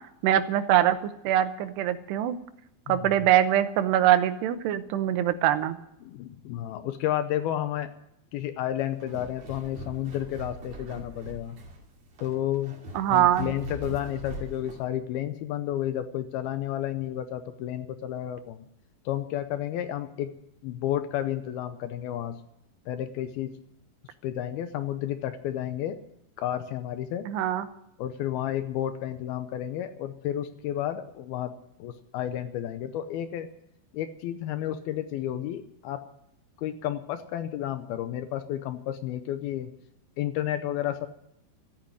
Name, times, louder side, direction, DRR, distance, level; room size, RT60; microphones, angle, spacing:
voice 1, 0.2-1.0 1.2-2.4 2.9-5.8 12.9-13.5 27.3-27.7, right 11 dB, 85° right, 11 dB, 3.1 m, -23 dB
voice 2, 6.0-7.9 8.3-11.6 12.2-12.8 13.1-18.7 19.1-20.3 20.6-22.4 22.9-23.5 24.2-26.0 26.4-27.3 28.0-33.5 33.9-36.0 36.6-39.7 40.2-41.1, left 11 dB, 75° left, 10 dB, 2.5 m, -31 dB
sound 1, 8.8-14.9, right 1 dB, 45° right, 3.3 m, -41 dB
14.0 x 8.8 x 10.0 m, 0.80 s
omnidirectional pair, 4.7 m